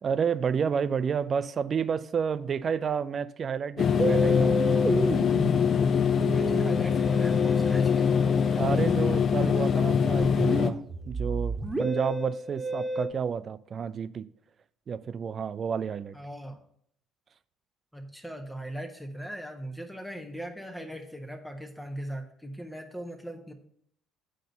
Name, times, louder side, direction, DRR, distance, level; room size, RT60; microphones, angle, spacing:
voice 1, 0.0-4.5 6.5-6.8 8.6-14.3 14.9-16.2, right 7 dB, 45° right, 0.4 m, -30 dB
sound 1, 3.8-10.7, left 7 dB, 50° left, 0.6 m, -23 dB
Musical instrument, 4.0-13.1, right 1 dB, 20° right, 1.6 m, -32 dB
voice 2, 6.3-8.1 16.1-16.6 17.9-23.5, right 1 dB, 5° left, 1.2 m, -39 dB
8.8 x 3.9 x 6.6 m
hypercardioid pair, 60°, 0 cm